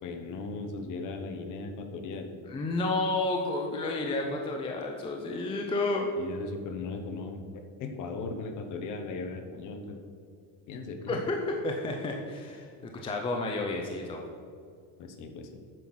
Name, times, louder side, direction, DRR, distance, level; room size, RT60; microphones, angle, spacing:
voice 1, 0.0-2.3 6.2-10.0 10.7-11.2 15.0-15.5, left 3 dB, 40° left, 6 dB, 1.0 m, -38 dB
voice 2, 2.5-6.1 11.1-14.2, left 2 dB, 10° left, 2 dB, 0.4 m, -31 dB
9.3 x 5.7 x 6.2 m, 2.2 s
cardioid pair, 160°, 47 cm